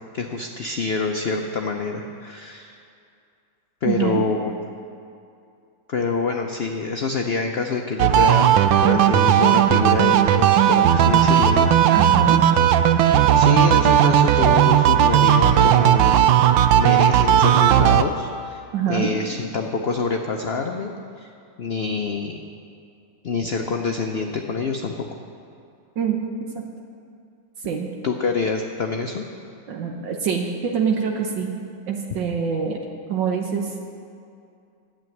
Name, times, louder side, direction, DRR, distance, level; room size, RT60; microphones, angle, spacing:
voice 1, 0.1-2.8 3.8-4.5 5.9-8.5 8.8-11.7 13.1-16.2 16.8-18.6 18.9-21.3 21.6-22.4 23.2-25.0 28.0-29.2, left 4 dB, 70° left, 2 dB, 0.6 m, -26 dB
voice 2, 3.8-4.2 11.9-12.4 18.7-19.1 26.0-26.6 27.6-27.9 29.7-32.8 33.1-33.7, right 7 dB, 75° right, 1 dB, 1.7 m, -25 dB
sound 1, 8.0-18.0, right 10 dB, 90° right, 1.3 m, -16 dB
12.5 x 7.8 x 9.3 m, 2.5 s
omnidirectional pair, 2.0 m